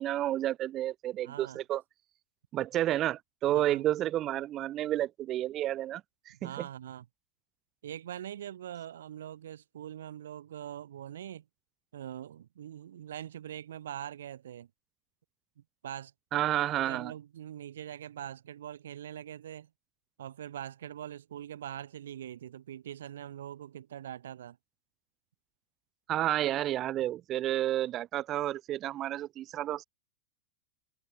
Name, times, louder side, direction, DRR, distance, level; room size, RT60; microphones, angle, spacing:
voice 1, 0.0-1.8 2.5-6.0 6.3-6.7 16.3-17.1 26.1-29.8, right 13 dB, 30° right, 1.1 m, -30 dB
voice 2, 1.2-1.6 3.5-3.9 6.4-7.1 7.8-11.4 11.9-14.7 15.6-16.4 16.9-19.7 20.2-24.6, right 10 dB, 60° right, 7.0 m, -43 dB
figure-of-eight pair, 90°, 0 cm